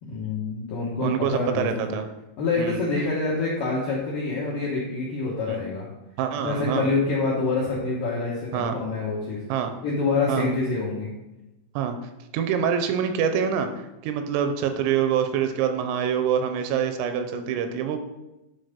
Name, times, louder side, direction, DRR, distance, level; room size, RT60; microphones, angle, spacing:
voice 1, 0.0-2.0 2.4-5.9 6.4-9.4 9.8-11.1, left 3 dB, 70° left, -6 dB, 2.0 m, -26 dB
voice 2, 1.0-2.0 2.6-2.8 5.5-5.6 6.2-6.9 8.5-8.7 9.5-9.7 10.3-10.5 11.8-12.0 12.3-18.0, right 8 dB, 90° right, 7 dB, 3.4 m, -25 dB
10.5 x 4.0 x 5.1 m, 0.98 s
omnidirectional pair, 6.0 m